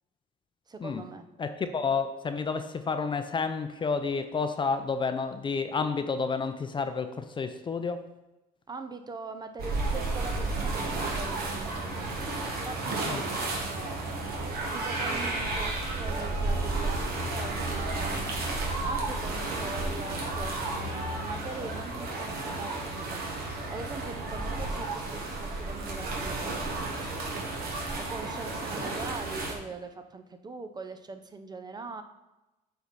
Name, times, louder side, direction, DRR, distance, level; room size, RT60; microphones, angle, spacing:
voice 1, 0.7-1.2 8.7-12.1 12.4-14.0 14.7-17.1 17.3-18.3 18.8-23.2 23.7-26.8 28.0-32.0, right 3 dB, 25° right, 8 dB, 0.6 m, -42 dB
voice 2, 1.4-8.0 13.1-13.2, left 5 dB, 30° left, 9 dB, 0.6 m, -30 dB
sound 1, 9.6-29.5, right 2 dB, 65° right, 1.7 m, -32 dB
8.4 x 4.6 x 4.1 m, 1.0 s
cardioid pair, 110°, 17 cm